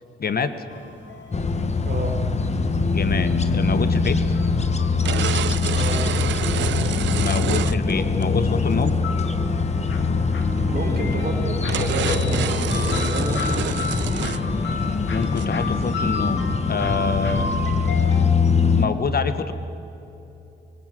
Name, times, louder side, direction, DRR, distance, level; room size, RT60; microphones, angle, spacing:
voice 1, 0.2-0.5 2.9-4.2 7.1-8.9 15.1-17.5 18.7-19.5, left 5 dB, 50° left, 11 dB, 1.6 m, -26 dB
sound 1, 0.7-18.3, left 4 dB, 70° left, 2.3 m, -35 dB
sound 2, 1.3-18.9, left 4 dB, 35° left, 1.5 m, -23 dB
sound 3, 4.0-4.1 5.0-8.2 8.7-8.9 10.8-10.9 11.2-11.3 11.7-14.5 14.7-14.8 15.2-15.9, right 12 dB, 70° right, 0.4 m, -29 dB
voice 2, 5.7-6.8 10.7-13.7 17.2-17.4, right 2 dB, 50° right, 1 dB, 4.9 m, -30 dB
23.0 x 19.0 x 7.8 m, 3.0 s
cardioid pair, 65°, 20 cm